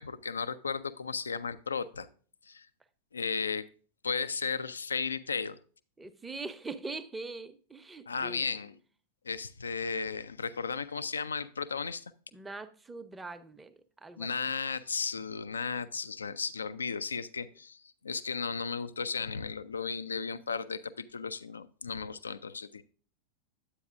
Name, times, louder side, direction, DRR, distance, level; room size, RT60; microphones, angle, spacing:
voice 1, 0.0-2.1 2.4-2.7 3.1-3.6 4.0-5.6 8.1-8.7 9.2-12.1 14.2-22.8, left 5 dB, 75° left, 0.4 m, -35 dB
voice 2, 6.0-8.4 12.3-14.3, right 3 dB, 10° right, 0.6 m, -42 dB
9.8 x 8.4 x 2.5 m
figure-of-eight pair, 90°, 0 cm